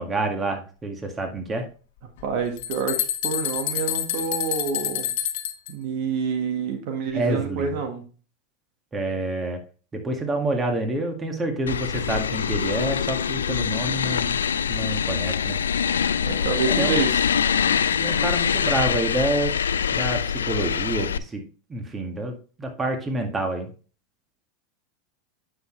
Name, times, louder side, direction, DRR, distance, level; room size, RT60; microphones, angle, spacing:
voice 1, 0.0-1.7 7.1-7.8 8.9-9.6 9.9-14.4 14.7-15.6 16.7-17.0 18.0-19.6 19.9-21.4 21.7-23.7, right 2 dB, 20° right, 4 dB, 2.0 m, -28 dB
sound 1, 2.2-2.3 2.6-5.7, left 11 dB, 65° left, 1.1 m, -28 dB
voice 2, 2.2-3.0 3.2-5.1 5.7-8.0 16.2-17.2, right 6 dB, 60° right, 4 dB, 1.6 m, -27 dB
sound 2, 11.7-21.2, left 7 dB, 85° left, 0.3 m, -24 dB
9.3 x 6.4 x 3.2 m, 0.37 s
hypercardioid pair, 90°, 0 cm